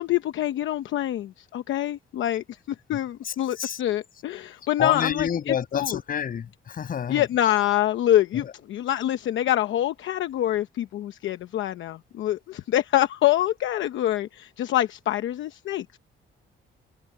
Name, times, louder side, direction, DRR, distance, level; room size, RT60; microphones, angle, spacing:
voice 1, 0.0-2.6 2.9-5.9 7.1-16.0, left 13 dB, 75° left, 0.9 m, -25 dB
voice 2, 3.2-3.8 4.6-7.3 8.3-8.5, left 8 dB, 45° left, 6.9 m, -29 dB
cardioid pair, 145°, 20 cm